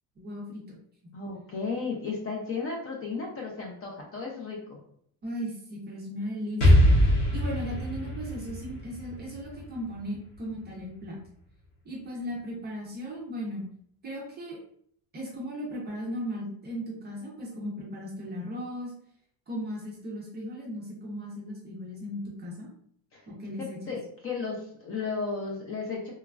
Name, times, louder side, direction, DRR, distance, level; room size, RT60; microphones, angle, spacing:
voice 1, 0.2-0.8 5.2-6.9 7.3-11.2 11.8-13.6 14.0-14.6 15.1-18.9 19.5-22.7 23.3-23.9, equal, 25° right, -3 dB, 0.4 m, -37 dB
voice 2, 1.1-4.8 23.1-23.2 23.6-26.1, left 4 dB, 30° left, -1 dB, 0.4 m, -34 dB
Explosion, 6.6-10.4, equal, 55° left, 1.0 m, -23 dB
3.0 x 2.3 x 2.3 m, 0.64 s
cardioid pair, 160°, 46 cm